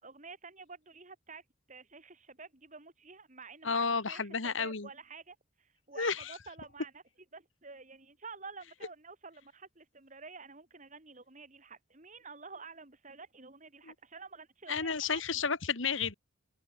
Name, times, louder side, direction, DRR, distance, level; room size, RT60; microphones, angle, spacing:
voice 1, 0.0-7.0 7.3-15.2, right 4 dB, 40° right, 3.2 m, -50 dB
voice 2, 3.6-4.9 6.0-6.3 13.9-14.0 14.7-16.1, left 5 dB, 80° left, 1.9 m, -32 dB
open air
head